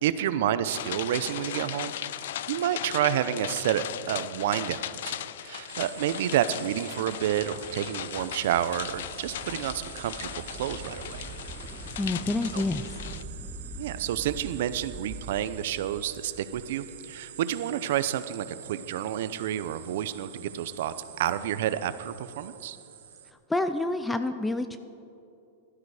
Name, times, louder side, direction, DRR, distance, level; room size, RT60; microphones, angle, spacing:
voice 1, 0.0-2.0 2.5-11.2 12.5-12.6 13.8-22.8, right 11 dB, 60° right, 14 dB, 0.6 m, -29 dB
sound 1, 0.7-13.2, left 11 dB, 65° left, 0.4 m, -38 dB
sound 2, 5.7-23.3, right 9 dB, 85° right, 1.1 m, -47 dB
sound 3, 8.1-17.1, right 2 dB, 10° right, 0.9 m, -44 dB
voice 2, 12.0-12.8 23.5-24.8, left 2 dB, 5° left, 10 dB, 0.4 m, -28 dB
16.0 x 12.0 x 4.9 m, 2.6 s
supercardioid pair, 165°, 0 cm